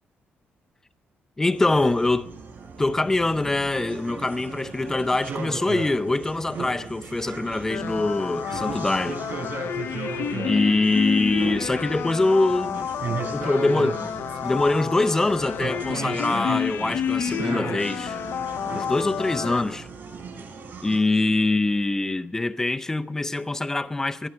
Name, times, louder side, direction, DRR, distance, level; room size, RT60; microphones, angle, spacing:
voice 1, 1.4-2.3 2.8-9.2 10.4-12.9 13.3-14.1 14.4-18.2 18.7-19.9 20.8-24.3, left 2 dB, 10° left, 0.5 m, -24 dB
sound 1, 1.5-21.0, right 5 dB, 60° right, 6.7 m, -36 dB
sound 2, 7.7-19.6, left 8 dB, 70° left, 0.6 m, -30 dB
21.5 x 14.0 x 4.5 m
wide cardioid pair, 165°, 4 cm